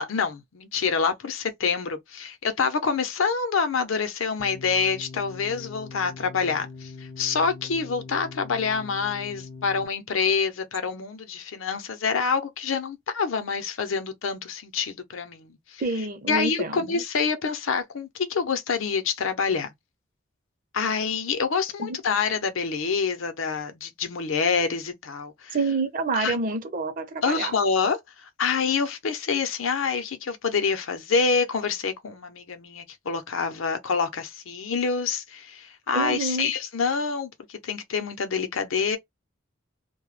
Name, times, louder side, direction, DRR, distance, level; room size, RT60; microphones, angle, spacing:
voice 1, 0.0-15.8 16.3-19.7 20.7-25.6 26.1-26.4 27.2-39.0, left 5 dB, 80° left, 0.6 m, -27 dB
sound 1, 4.4-9.9, left 4 dB, 25° left, 0.4 m, -42 dB
voice 2, 15.8-17.0 21.8-22.0 25.5-27.6 35.9-36.5, right 3 dB, 45° right, 0.6 m, -28 dB
2.1 x 2.0 x 3.1 m
head